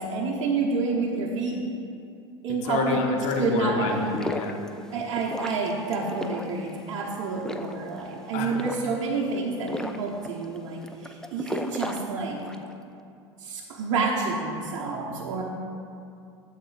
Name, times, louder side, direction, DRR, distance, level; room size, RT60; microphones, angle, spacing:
voice 1, 0.0-1.6 2.4-3.0 3.4-4.0 4.9-12.4 13.4-15.4, right 4 dB, 55° right, -3 dB, 1.0 m, -29 dB
voice 2, 2.5-4.6 8.3-8.5, left 5 dB, 50° left, 1 dB, 1.2 m, -28 dB
sound 1, 3.9-12.7, left 1 dB, 5° left, 0.5 m, -37 dB
12.5 x 7.3 x 2.5 m, 2.5 s
hypercardioid pair, 80°, 15 cm